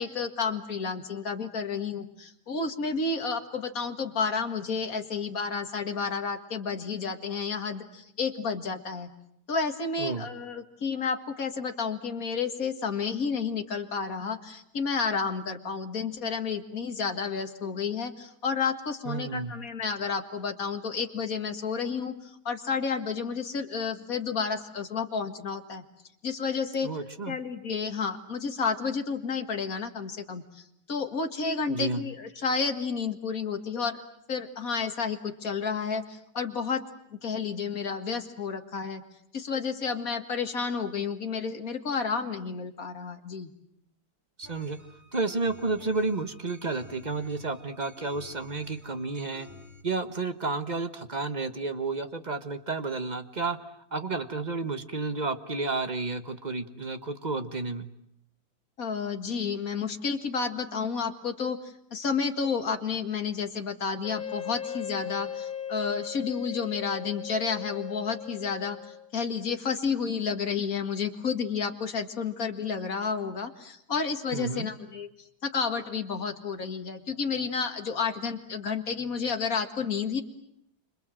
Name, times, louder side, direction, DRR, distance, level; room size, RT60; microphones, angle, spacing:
voice 1, 0.0-9.1 9.5-25.8 26.2-26.9 27.3-34.0 34.3-36.8 37.1-39.0 39.3-43.5 58.8-75.1 75.4-80.2, left 5 dB, 45° left, 6 dB, 2.2 m, -31 dB
voice 2, 19.0-19.5 26.8-27.4 31.7-32.0 44.4-44.8 45.1-49.5 49.8-53.6 53.9-57.9 74.3-74.7, right 3 dB, 25° right, 8 dB, 1.2 m, -31 dB
sound 1, 44.4-49.8, left 3 dB, 10° right, 2.7 m, -51 dB
Wind instrument woodwind instrument, 64.0-69.1, left 8 dB, 25° left, 1.2 m, -38 dB
30.0 x 26.0 x 7.7 m, 0.75 s
omnidirectional pair, 2.1 m